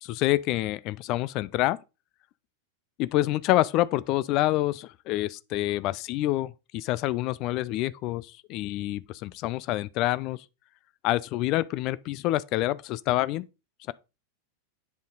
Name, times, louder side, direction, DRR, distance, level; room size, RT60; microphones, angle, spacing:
voice 1, 0.0-1.8 3.0-10.4 11.0-13.5, left 16 dB, 40° left, 0.4 m, -27 dB
8.1 x 5.1 x 3.9 m
figure-of-eight pair, 90°, 0 cm